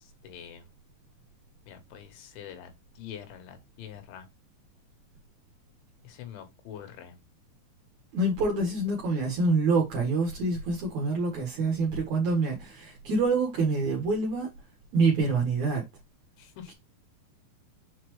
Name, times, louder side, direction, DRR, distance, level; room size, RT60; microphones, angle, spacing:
voice 1, 0.2-0.6 1.7-2.7 3.0-4.3 6.1-7.1 16.4-16.7, left 9 dB, 75° left, 3.5 m, -44 dB
voice 2, 8.1-14.5 14.9-15.9 16.7-16.8, right 3 dB, 60° right, 2.0 m, -26 dB
7.2 x 4.3 x 3.2 m
omnidirectional pair, 5.6 m